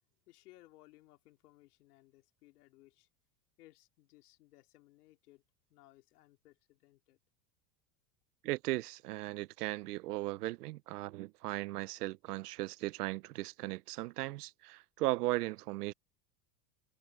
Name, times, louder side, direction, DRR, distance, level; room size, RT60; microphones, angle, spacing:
voice 1, 0.3-3.1 3.6-5.4 5.7-7.2, left 18 dB, 80° left, 2.9 m, -62 dB
voice 2, 8.4-15.9, right 18 dB, 90° right, 0.8 m, -37 dB
supercardioid pair, 110°, 45 cm